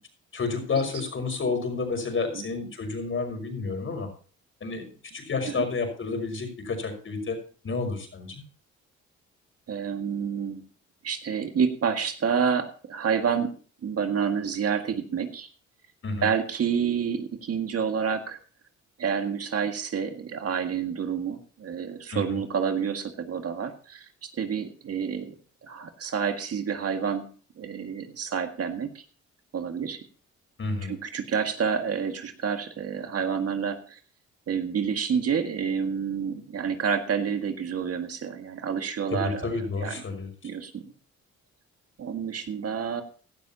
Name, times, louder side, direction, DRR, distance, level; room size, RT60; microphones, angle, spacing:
voice 1, 0.3-4.1 4.6-4.9 5.1-7.4 7.6-8.4 16.0-16.3 22.1-22.4 30.6-30.9 39.1-40.3, left 4 dB, 45° left, 4 dB, 5.6 m, -30 dB
voice 2, 9.7-10.6 11.0-13.6 13.8-15.5 16.2-18.4 19.0-25.3 25.6-27.3 27.6-29.0 29.5-30.0 30.9-34.0 34.5-39.5 39.8-40.0 40.4-40.8 42.0-43.0, right 6 dB, 55° right, 6 dB, 1.9 m, -28 dB
17.0 x 12.0 x 2.9 m, 0.41 s
cardioid pair, 90°, 30 cm